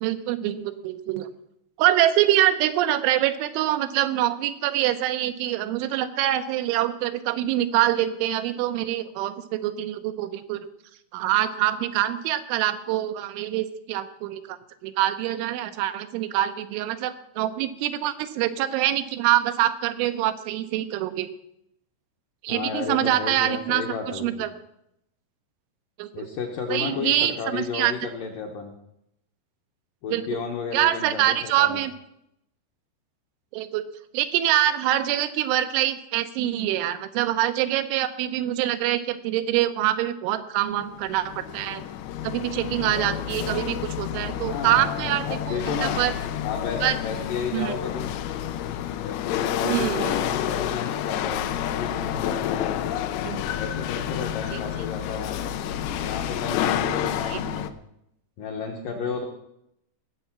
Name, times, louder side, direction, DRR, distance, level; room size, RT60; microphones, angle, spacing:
voice 1, 0.0-1.3 1.8-10.7 11.1-14.6 14.8-21.3 22.4-23.8 24.1-24.5 26.0-26.1 26.7-27.9 30.1-30.4 30.7-31.9 33.5-33.8 34.1-41.8 42.2-46.1 46.8-47.0 47.5-47.7 49.6-50.2 53.2-53.4 54.5-54.6 57.3-57.4, right 13 dB, 90° right, 10 dB, 3.3 m, -25 dB
voice 2, 22.5-24.5 26.1-28.7 30.0-31.8 44.3-46.0 46.4-48.1 49.0-52.8 53.5-55.5 55.9-57.7 58.4-59.3, left 5 dB, 70° left, 2 dB, 2.0 m, -32 dB
Chatter / Hiss / Rattle, 40.8-57.7, left 10 dB, 90° left, 2.1 m, -29 dB
19.0 x 7.5 x 5.9 m, 0.78 s
omnidirectional pair, 5.4 m